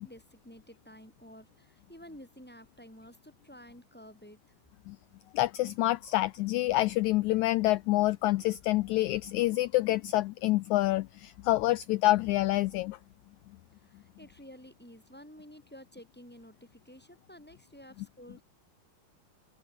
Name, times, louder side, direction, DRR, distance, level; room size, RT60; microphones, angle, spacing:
voice 1, 0.0-4.4 13.8-18.4, equal, 5° left, 7.0 m, -52 dB
voice 2, 5.3-13.0, left 17 dB, 90° left, 1.6 m, -27 dB
omnidirectional pair, 4.0 m